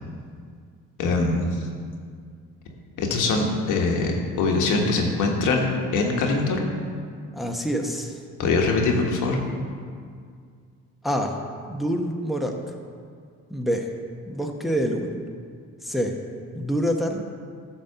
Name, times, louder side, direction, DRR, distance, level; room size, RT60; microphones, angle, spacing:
voice 1, 1.0-1.5 3.0-6.6 8.4-9.4, left 3 dB, 85° left, 1 dB, 1.4 m, -23 dB
voice 2, 7.3-8.2 11.0-11.4 11.6-12.6 13.5-13.9 14.3-15.2 15.8-16.1 16.5-17.2, equal, ahead, 2 dB, 0.9 m, -26 dB
11.0 x 4.2 x 6.8 m, 2.1 s
cardioid pair, 90°, 30 cm